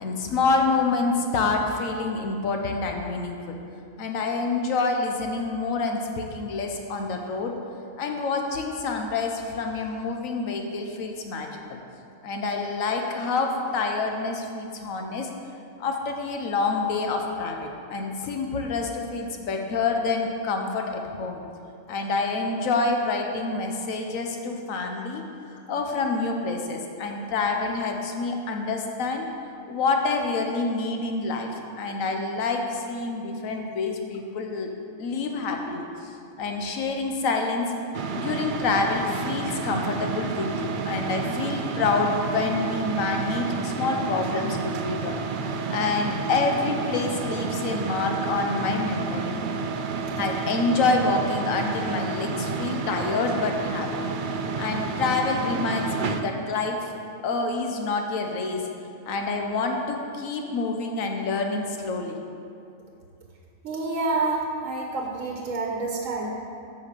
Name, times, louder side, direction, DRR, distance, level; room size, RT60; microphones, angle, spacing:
voice 1, 0.0-3.6 4.0-7.5 8.0-11.8 12.2-15.3 15.8-21.4 21.9-25.3 25.5-29.3 29.7-34.7 35.0-37.7 38.2-45.2 45.7-49.7 50.2-53.9 54.3-57.0 57.2-58.7 59.1-62.2, left 3 dB, 85° left, 3 dB, 1.2 m, -27 dB
sound 1, 37.9-56.2, right 4 dB, 60° right, 0.5 m, -30 dB
voice 2, 63.6-66.3, right 3 dB, 80° right, 0 dB, 1.2 m, -28 dB
8.2 x 5.5 x 6.7 m, 2.5 s
omnidirectional pair, 1.4 m